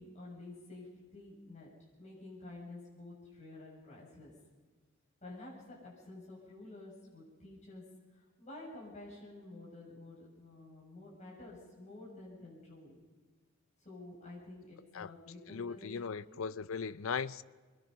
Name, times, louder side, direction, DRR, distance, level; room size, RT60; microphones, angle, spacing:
voice 1, 0.0-1.7 2.0-4.3 5.2-13.0 13.8-16.5, left 2 dB, 35° left, 7.1 m, -50 dB
voice 2, 15.5-17.4, left 6 dB, 80° left, 0.5 m, -38 dB
25.5 x 21.5 x 5.5 m
head